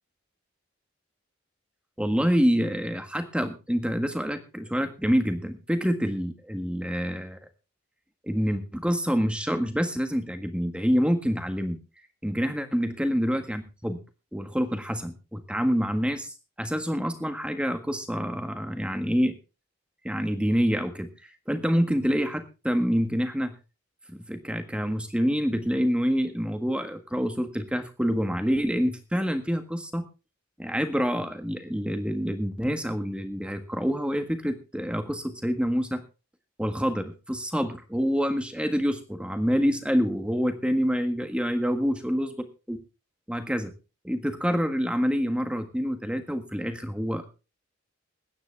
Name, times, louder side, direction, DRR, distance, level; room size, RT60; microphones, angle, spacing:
voice 1, 2.0-7.4 8.2-11.8 12.2-14.0 14.3-19.4 20.0-21.1 21.5-23.5 24.1-30.0 30.6-36.0 36.6-42.8 43.3-43.7 44.0-47.3, equal, 5° right, 7 dB, 1.6 m, -27 dB
21.0 x 9.5 x 3.5 m, 0.31 s
head